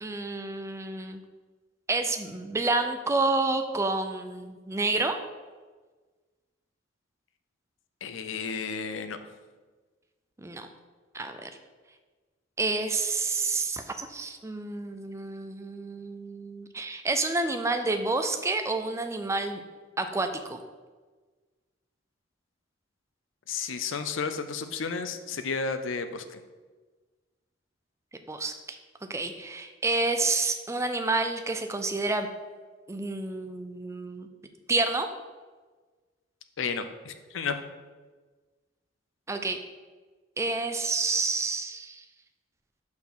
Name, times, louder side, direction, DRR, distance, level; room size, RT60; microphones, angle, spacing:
voice 1, 0.0-1.2 1.9-5.2 10.4-10.7 11.1-11.5 12.6-19.6 20.0-20.6 28.3-28.8 29.1-32.3 32.9-34.3 34.7-35.1 39.3-39.6 40.4-42.0, right 3 dB, 15° right, 7 dB, 0.5 m, -29 dB
voice 2, 8.0-9.2 23.5-26.4 36.6-37.6, left 5 dB, 80° left, 9 dB, 0.6 m, -32 dB
5.7 x 4.3 x 6.1 m, 1.4 s
head